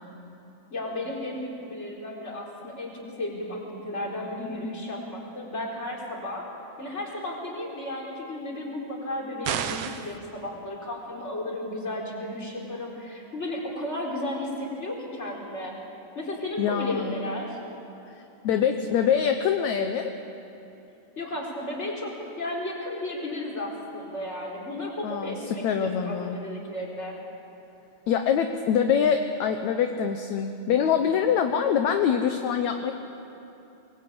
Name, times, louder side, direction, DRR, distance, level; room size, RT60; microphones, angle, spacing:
voice 1, 0.7-6.5 6.8-15.7 16.1-17.6 21.2-27.2, left 1 dB, 20° left, -2 dB, 4.5 m, -34 dB
sound 1, 9.4-10.2, right 9 dB, 65° right, 1.8 m, -30 dB
voice 2, 16.6-17.3 18.4-20.1 25.0-26.4 28.1-32.9, left 7 dB, 70° left, 5 dB, 2.2 m, -24 dB
25.0 x 21.5 x 8.8 m, 2.9 s
omnidirectional pair, 3.8 m